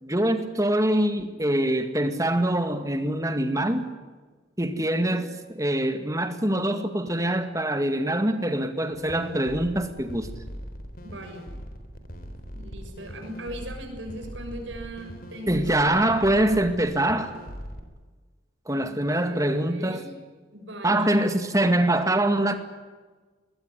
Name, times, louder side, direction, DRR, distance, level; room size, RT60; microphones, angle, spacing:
voice 1, 0.0-3.9 4.6-10.3 15.5-17.3 18.7-20.0 20.8-22.5, right 1 dB, 15° right, 8 dB, 2.1 m, -24 dB
sound 1, 8.9-17.8, equal, 50° left, 3.7 m, -40 dB
voice 2, 11.0-11.5 12.5-15.8 18.7-19.0 19.2-20.1 20.5-21.1, right 1 dB, 75° right, 5 dB, 6.9 m, -39 dB
21.5 x 20.5 x 9.9 m, 1.4 s
head